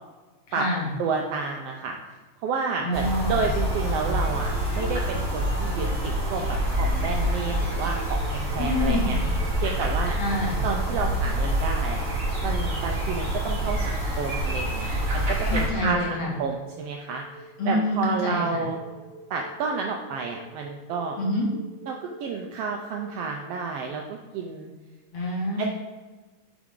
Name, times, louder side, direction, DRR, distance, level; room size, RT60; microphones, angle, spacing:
voice 1, 0.5-0.9 2.8-3.4 8.6-9.2 10.1-10.6 15.5-16.4 17.6-18.6 21.2-21.5 25.1-25.7, left 1 dB, 55° left, -4 dB, 2.9 m, -27 dB
voice 2, 1.0-2.0 2.4-9.2 9.6-10.2 10.6-12.0 12.4-17.2 17.7-18.8 19.3-21.2 21.9-24.7 25.6-25.7, right 4 dB, 75° right, 2 dB, 1.5 m, -30 dB
sound 1, 2.9-15.7, right 1 dB, 30° right, 1.7 m, -26 dB
sound 2, 3.5-8.5, left 4 dB, 70° left, 1.4 m, -41 dB
sound 3, 7.9-23.3, right 3 dB, 25° left, 2.4 m, -47 dB
8.2 x 6.2 x 3.8 m, 1.3 s
omnidirectional pair, 3.3 m